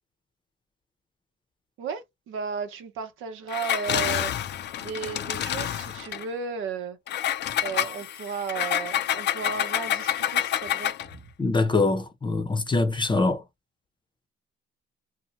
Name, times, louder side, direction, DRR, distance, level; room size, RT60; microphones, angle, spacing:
voice 1, 1.8-4.3 4.8-7.0 7.6-11.3, right 5 dB, 85° right, 0.8 m, -34 dB
Engine, 3.5-6.2 7.1-11.1, left 11 dB, 60° left, 0.5 m, -28 dB
voice 2, 11.4-13.4, left 3 dB, 25° left, 0.7 m, -23 dB
2.7 x 2.1 x 3.0 m
cardioid pair, 90°, 20 cm